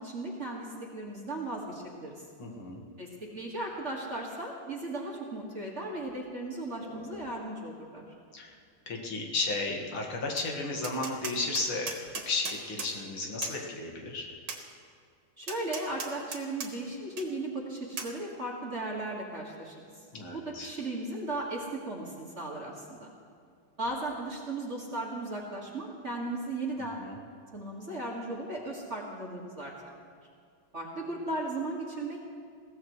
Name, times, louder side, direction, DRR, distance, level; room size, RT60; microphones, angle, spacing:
voice 1, 0.0-2.2 3.0-8.0 15.4-19.8 20.3-23.1 23.8-27.1 27.5-29.7 30.7-32.3, right 2 dB, 35° right, -3 dB, 1.9 m, -36 dB
voice 2, 2.4-2.8 6.8-7.2 8.3-8.5 8.9-12.0 12.3-14.3 20.1-20.7 26.8-27.2, left 3 dB, 70° left, 0 dB, 2.6 m, -34 dB
Tap, 10.4-10.5 10.8-12.9 13.4-13.6 14.5-14.6 15.5-16.7 17.2-17.3 18.0-18.1, right 5 dB, 70° right, 2.2 m, -38 dB
21.5 x 16.5 x 3.2 m, 2.2 s
omnidirectional pair, 2.4 m